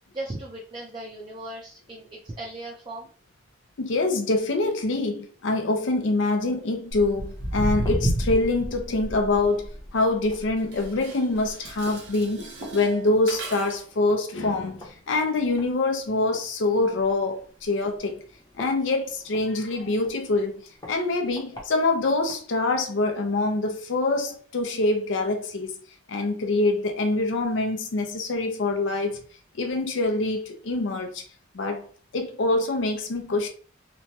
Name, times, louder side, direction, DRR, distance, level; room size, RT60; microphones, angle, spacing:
voice 1, 0.1-3.1, right 1 dB, 25° right, 0.5 m, -37 dB
voice 2, 3.8-18.2 18.6-20.6 20.9-25.8 26.1-29.2 29.5-31.2 31.5-31.8 32.1-33.5, left 2 dB, 70° left, 0.5 m, -25 dB
Walk footsteps, 6.9-13.6 13.9-14.2 14.8-14.9 15.6-15.7 16.1-16.2 16.3-16.4 17.0-17.2 17.8-19.4 20.0-20.1 20.8-20.9 21.3-21.6 22.3-22.4, equal, 20° left, 0.7 m, -31 dB
Dishes pots and pans, 10.6-13.9, right 3 dB, 60° right, 0.7 m, -41 dB
3.0 x 2.2 x 2.7 m
head